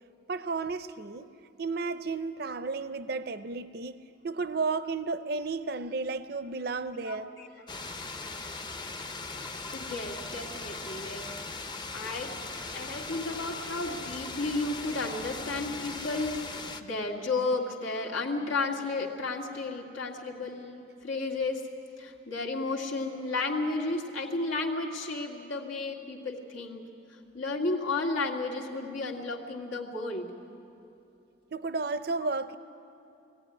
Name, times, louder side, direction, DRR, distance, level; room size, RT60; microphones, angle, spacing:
voice 1, 0.3-1.3 1.6-4.0 4.2-7.3 12.5-12.8 31.5-32.5, right 4 dB, 50° right, 12 dB, 0.5 m, -33 dB
voice 2, 6.9-7.5 9.7-11.3 11.9-12.4 12.7-16.4 16.8-21.7 22.0-26.9 27.3-30.3, left 3 dB, 90° left, -1 dB, 2.2 m, -33 dB
sound 1, 7.7-16.8, left 3 dB, 20° left, 0.6 m, -39 dB
20.5 x 15.0 x 9.8 m, 2.8 s
head